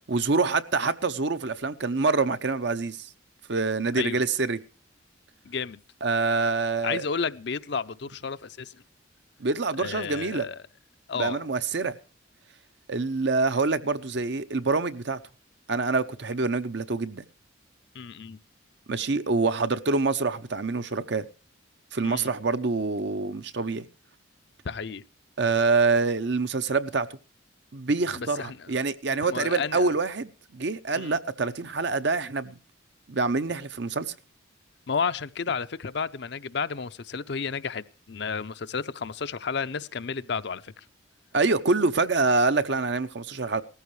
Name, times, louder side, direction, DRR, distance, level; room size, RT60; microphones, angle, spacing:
voice 1, 0.1-3.1 3.5-4.6 6.0-7.0 9.4-10.5 11.2-12.0 12.9-15.2 15.7-17.3 18.9-21.2 21.9-23.9 25.4-27.1 27.7-32.6 33.1-34.1 41.3-43.6, right 3 dB, 60° right, 0.8 m, -26 dB
voice 2, 5.4-5.8 6.8-8.8 9.8-10.6 11.1-11.5 17.9-18.4 22.0-22.3 24.6-25.0 28.2-28.7 29.3-29.9 31.0-31.1 34.9-40.8, left 5 dB, 55° left, 0.6 m, -32 dB
18.0 x 14.5 x 3.2 m
head